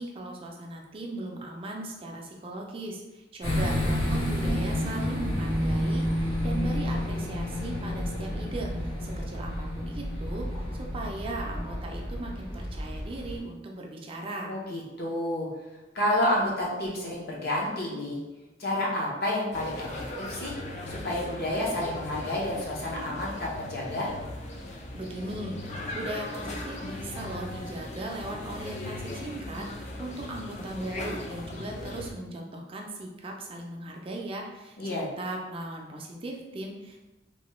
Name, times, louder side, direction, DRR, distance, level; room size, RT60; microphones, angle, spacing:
voice 1, 0.0-10.5 10.7-14.5 24.9-37.0, right 2 dB, 30° right, 0 dB, 0.4 m, -38 dB
sound 1, 3.4-13.4, equal, 80° left, 1.1 m, -30 dB
voice 2, 14.5-15.5 15.9-18.2 18.6-20.5 20.9-24.1 34.8-35.0, left 1 dB, 60° left, -4 dB, 0.8 m, -30 dB
sound 2, 19.5-32.1, left 1 dB, 40° left, 0.4 m, -38 dB
3.0 x 2.2 x 3.0 m, 1.1 s
head